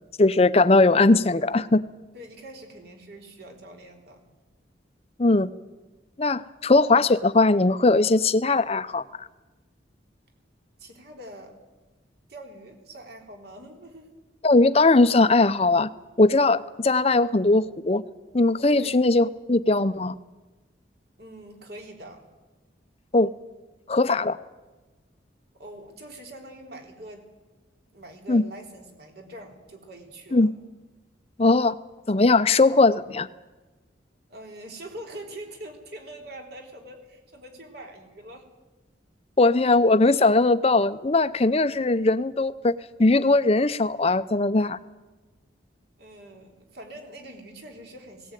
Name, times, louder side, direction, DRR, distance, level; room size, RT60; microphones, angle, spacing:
voice 1, 0.2-1.8 5.2-5.5 6.2-9.3 14.4-15.9 16.2-18.0 18.3-20.1 23.1-23.3 23.9-24.4 28.3-28.4 30.3-30.5 31.4-31.8 32.1-33.3 39.4-42.7 43.0-44.8, left 2 dB, 30° left, 13 dB, 0.6 m, -20 dB
voice 2, 2.1-4.2 10.8-11.6 12.3-14.1 18.7-19.0 21.2-22.3 25.6-27.3 27.9-30.5 34.3-38.5 46.0-48.3, right 1 dB, 55° right, 3 dB, 3.6 m, -43 dB
18.0 x 17.5 x 9.1 m, 1.2 s
head